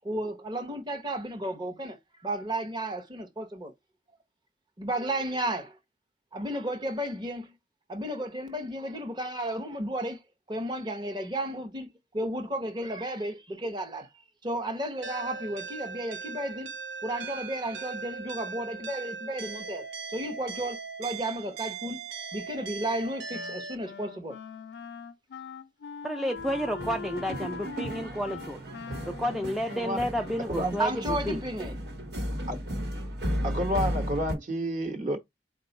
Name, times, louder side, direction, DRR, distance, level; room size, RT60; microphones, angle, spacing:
voice 1, 0.0-2.0 2.2-3.7 4.8-5.8 6.3-7.5 7.9-10.2 10.5-14.1 14.4-16.7 17.0-22.0 22.3-24.4 30.8-31.7, right 1 dB, 25° right, 0.7 m, -33 dB
sound 1, 15.0-23.8, right 4 dB, 85° right, 0.7 m, -39 dB
Wind instrument woodwind instrument, 23.3-30.8, left 6 dB, 70° left, 0.4 m, -42 dB
voice 2, 26.0-28.6 29.1-31.4, equal, ahead, 0.3 m, -31 dB
sound 2, 26.4-34.3, equal, 65° right, 1.2 m, -35 dB
voice 3, 30.5-30.8 32.5-32.6 33.4-35.2, equal, 45° right, 1.1 m, -30 dB
4.2 x 2.2 x 4.0 m
head